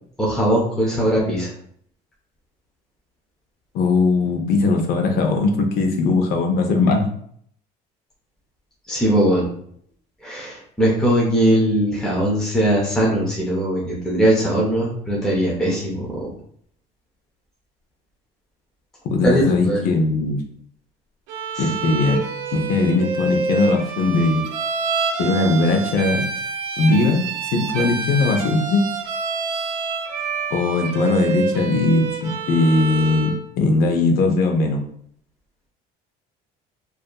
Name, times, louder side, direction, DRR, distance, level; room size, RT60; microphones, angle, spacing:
voice 1, 0.2-1.5 8.9-9.5 10.2-16.1 19.2-19.8 21.5-21.7, right 1 dB, 5° left, -5 dB, 0.5 m, -20 dB
voice 2, 3.7-7.1 19.0-20.4 21.6-22.3 22.5-24.5 25.2-26.2 26.8-28.8 30.5-34.8, left 3 dB, 60° left, 4 dB, 0.5 m, -19 dB
Bowed string instrument, 21.3-33.4, right 5 dB, 85° right, 0.5 m, -27 dB
2.7 x 2.4 x 2.3 m, 0.65 s
cardioid pair, 145°, 17 cm